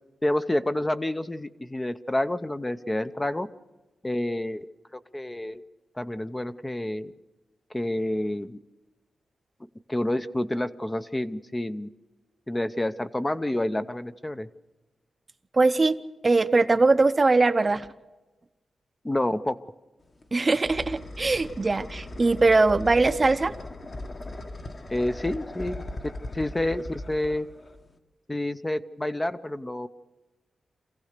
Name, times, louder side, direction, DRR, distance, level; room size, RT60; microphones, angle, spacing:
voice 1, 0.2-3.5 4.0-4.7 4.9-5.6 6.0-7.1 7.7-8.6 9.9-11.9 12.5-14.5 19.0-19.6 24.9-25.8 26.3-27.5 28.3-29.9, left 1 dB, 15° left, 10 dB, 0.6 m, -28 dB
voice 2, 15.5-16.0 16.2-17.9 20.3-23.5, right 3 dB, 25° right, 12 dB, 0.7 m, -21 dB
sound 1, 20.0-28.0, left 1 dB, 35° left, 1.3 m, -39 dB
26.0 x 16.0 x 6.6 m, 1.1 s
wide cardioid pair, 150°, 0 cm